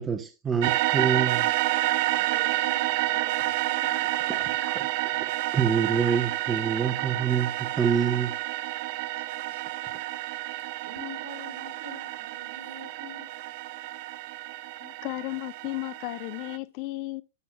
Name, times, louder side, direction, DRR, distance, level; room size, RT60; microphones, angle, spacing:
voice 1, 0.0-1.5 4.3-4.9 5.2-8.3, right 7 dB, 15° right, 0.8 m, -27 dB
sound 1, 0.6-16.6, right 17 dB, 50° right, 0.6 m, -29 dB
voice 2, 2.1-4.9 9.1-9.8 10.8-13.3, right 1 dB, 70° right, 4.1 m, -45 dB
voice 3, 14.8-17.2, left 20 dB, 45° left, 0.5 m, -34 dB
12.5 x 7.3 x 2.2 m
hypercardioid pair, 140°, 0 cm